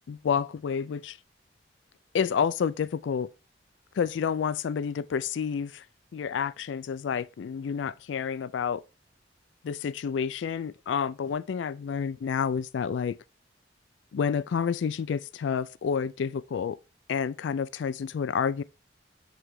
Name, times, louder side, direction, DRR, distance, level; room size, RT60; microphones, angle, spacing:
voice 1, 0.1-1.2 2.1-3.3 4.0-5.8 6.1-8.8 9.6-13.2 14.1-16.8 17.1-18.6, left 6 dB, 85° left, 0.3 m, -29 dB
7.9 x 3.3 x 4.6 m
head